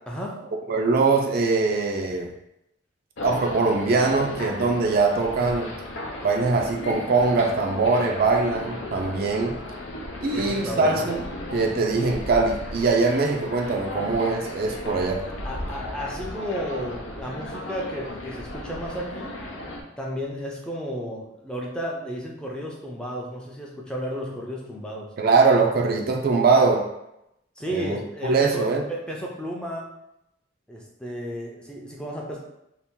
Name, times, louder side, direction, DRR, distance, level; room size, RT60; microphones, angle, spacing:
voice 1, 0.1-0.4 6.1-6.4 10.3-11.1 15.4-19.3 20.0-25.1 27.6-29.9 30.7-32.4, equal, 5° left, -3 dB, 0.5 m, -33 dB
voice 2, 0.7-2.3 3.2-5.7 6.2-9.6 10.2-11.2 11.5-15.2 25.2-26.9 27.7-28.8, right 4 dB, 50° right, 2 dB, 0.4 m, -22 dB
sound 1, 3.2-19.8, left 1 dB, 85° left, 0.6 m, -35 dB
2.8 x 2.4 x 3.5 m, 0.84 s
head